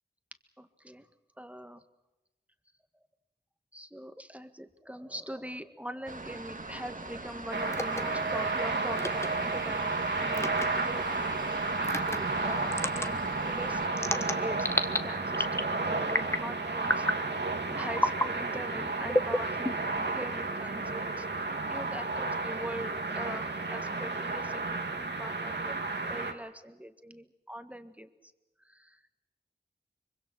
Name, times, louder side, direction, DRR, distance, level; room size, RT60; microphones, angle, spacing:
voice 1, 0.6-1.1 1.4-1.8 3.7-11.3 11.8-21.3 21.7-25.8 26.1-28.1 28.6-29.2, equal, 10° right, 9 dB, 1.7 m, -43 dB
sound 1, 6.1-13.9, right 2 dB, 50° right, 1.7 m, -42 dB
sound 2, 7.5-26.3, right 3 dB, 75° right, 2.1 m, -32 dB
sound 3, 7.7-8.0 9.0-9.3 10.3-10.7 11.8-12.2 12.7-13.1 14.0-15.0 15.3-15.7 16.1-16.5 16.8-17.2 18.0-18.3 19.1-20.0, left 1 dB, 15° left, 1.3 m, -29 dB
24.5 x 24.0 x 6.2 m, 1.0 s
wide cardioid pair, 55°, 18 cm